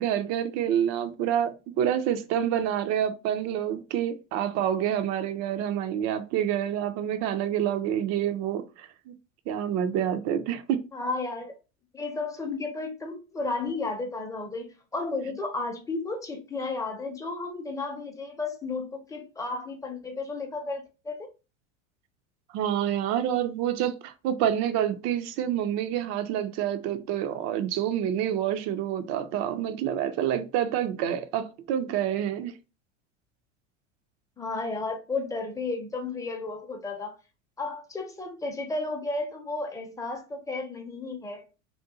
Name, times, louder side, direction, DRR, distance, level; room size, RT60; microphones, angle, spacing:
voice 1, 0.0-9.1 9.5-10.8 22.5-32.5, right 10 dB, 45° right, 0.5 m, -28 dB
voice 2, 10.9-11.5 11.9-21.3 34.4-37.2 37.6-41.5, left 3 dB, 10° left, 0.6 m, -33 dB
2.5 x 2.2 x 2.7 m
hypercardioid pair, 90°, 37 cm